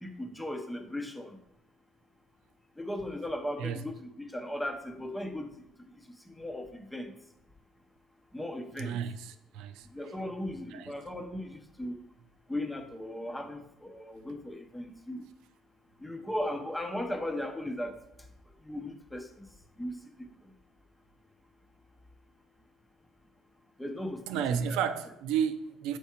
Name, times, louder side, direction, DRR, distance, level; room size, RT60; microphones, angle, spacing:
voice 1, 0.0-1.4 2.8-5.9 6.3-7.1 8.3-9.0 9.9-12.0 12.5-15.3 16.0-18.0 18.6-19.5 19.8-20.3 23.8-24.8, left 1 dB, 5° left, 0.8 m, -37 dB
voice 2, 8.8-9.9 10.7-10.9 24.3-26.0, right 8 dB, 85° right, 0.5 m, -32 dB
6.9 x 4.7 x 4.4 m
cardioid pair, 120°, 0 cm